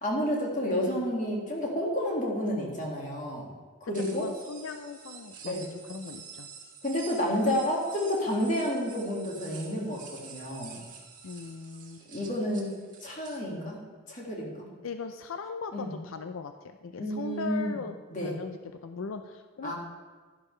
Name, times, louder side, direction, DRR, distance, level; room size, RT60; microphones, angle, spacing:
voice 1, 0.0-3.5 3.8-4.3 5.5-5.7 6.8-10.8 12.1-13.8 14.1-14.7 15.7-15.9 17.0-17.8 18.1-18.3 19.6-19.7, equal, 40° left, -2 dB, 2.1 m, -30 dB
sound 1, 3.9-13.4, right 6 dB, 40° right, 1.5 m, -48 dB
voice 2, 4.1-6.5 11.2-12.0 14.8-17.9 18.2-19.7, left 5 dB, 90° left, 8 dB, 0.5 m, -39 dB
11.5 x 11.0 x 3.2 m, 1.4 s
head